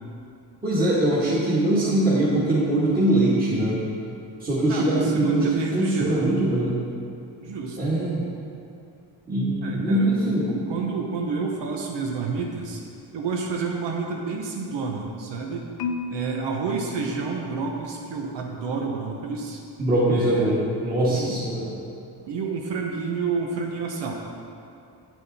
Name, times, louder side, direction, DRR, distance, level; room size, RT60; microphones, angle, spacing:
voice 1, 0.6-3.8 4.4-6.8 7.8-8.2 9.3-10.5 19.8-21.7, right 1 dB, 20° right, -9 dB, 1.8 m, -22 dB
voice 2, 4.7-6.4 7.4-7.8 9.6-10.1 10.5-12.8 13.1-15.7 16.1-19.6 20.1-20.5 21.0-21.4 22.3-24.1, right 4 dB, 85° right, 0 dB, 0.9 m, -29 dB
Marimba xylophone, 15.8-18.0, left 4 dB, 60° left, 0.6 m, -35 dB
8.5 x 7.5 x 4.1 m, 2.5 s
cardioid pair, 125°, 42 cm